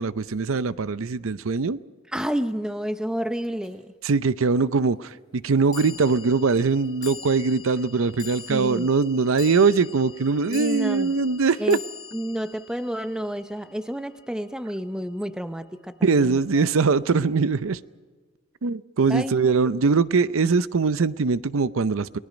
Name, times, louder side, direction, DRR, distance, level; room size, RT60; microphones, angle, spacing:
voice 1, 0.0-1.8 4.0-11.8 16.0-17.8 18.6-22.2, right 4 dB, 80° right, 0.6 m, -22 dB
voice 2, 2.1-3.9 8.5-8.9 10.5-11.1 11.6-11.8 12.1-16.4 19.1-19.7, equal, 5° right, 0.7 m, -30 dB
sound 1, 3.6-3.7 5.7-14.1, left 7 dB, 20° left, 7.8 m, -43 dB
29.5 x 20.0 x 5.2 m
head